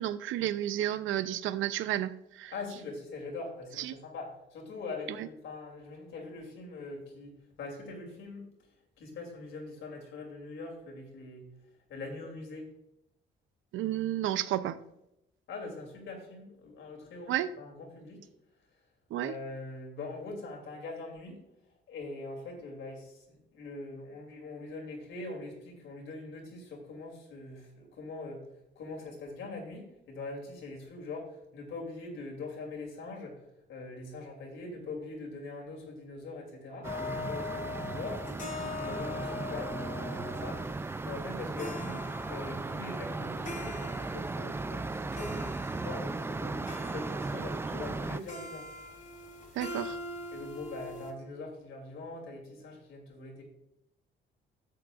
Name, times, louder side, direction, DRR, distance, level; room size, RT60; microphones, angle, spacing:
voice 1, 0.0-2.5 3.8-3.9 5.2-5.3 13.7-14.8 17.3-17.5 19.1-19.3 49.6-50.0, right 12 dB, 80° right, 14 dB, 0.6 m, -31 dB
voice 2, 2.5-7.3 7.6-8.4 9.0-11.5 11.9-12.7 15.5-18.3 19.2-21.4 21.9-28.5 28.7-42.0 42.3-48.7 50.3-53.4, left 3 dB, 75° left, 1 dB, 2.8 m, -42 dB
sound 1, 36.8-51.1, left 3 dB, 40° left, 2.3 m, -42 dB
sound 2, 36.8-48.2, right 3 dB, 10° right, 0.3 m, -37 dB
13.0 x 7.7 x 2.4 m, 0.83 s
cardioid pair, 90°, 20 cm